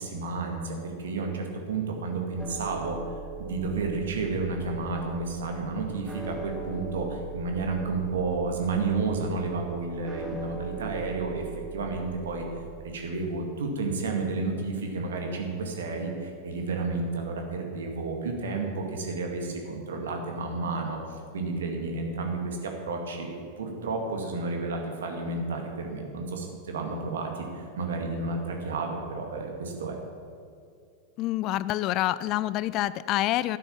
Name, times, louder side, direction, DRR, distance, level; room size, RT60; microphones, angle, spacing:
voice 1, 0.0-3.0 3.4-11.5 11.7-12.5 12.8-30.0, right 3 dB, 65° right, 2 dB, 2.1 m, -31 dB
sound 1, 2.4-12.9, right 3 dB, 10° right, 1.3 m, -41 dB
voice 2, 31.2-33.6, left 15 dB, 40° left, 17 dB, 0.3 m, -27 dB
12.0 x 9.3 x 7.3 m, 2.3 s
figure-of-eight pair, 90°, 0 cm